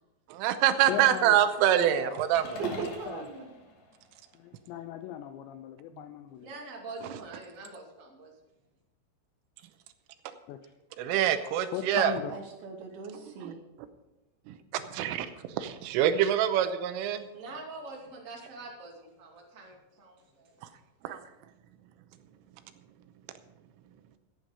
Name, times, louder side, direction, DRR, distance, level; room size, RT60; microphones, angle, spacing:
voice 1, 0.3-2.5 11.0-12.1 13.4-13.5 14.5-15.3 15.6-17.3 21.0-21.2, right 11 dB, 85° right, 10 dB, 3.3 m, -25 dB
voice 2, 0.9-1.4 1.8-2.3 2.7-3.3 4.3-6.6 10.5-10.7 11.7-12.3, left 11 dB, 85° left, 8 dB, 2.5 m, -38 dB
sound 1, 2.4-4.7, left 1 dB, 60° left, 4.0 m, -43 dB
voice 3, 2.6-3.5 5.9-6.1 12.3-13.6, right 5 dB, 65° right, 2 dB, 2.6 m, -38 dB
voice 4, 6.4-8.3 17.3-20.5, right 3 dB, 35° right, -1 dB, 1.2 m, -45 dB
14.5 x 9.3 x 5.1 m, 0.95 s
omnidirectional pair, 5.8 m